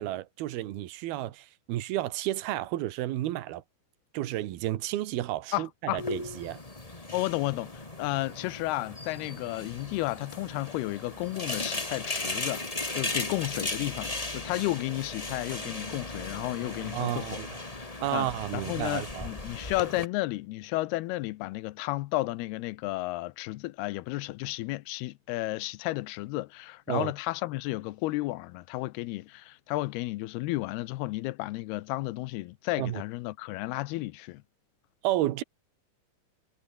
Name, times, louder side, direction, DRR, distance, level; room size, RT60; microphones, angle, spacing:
voice 1, 0.0-3.6 4.1-6.6 16.9-17.5 18.0-19.3 26.9-27.1 32.8-33.0 35.0-35.4, right 14 dB, 75° right, 3.2 m, -31 dB
voice 2, 5.5-6.0 7.1-12.6 12.9-17.4 18.1-18.3 18.5-34.4, left 19 dB, 85° left, 2.7 m, -32 dB
sound 1, 6.0-20.1, left 2 dB, 15° left, 1.5 m, -37 dB
omnidirectional pair, 4.5 m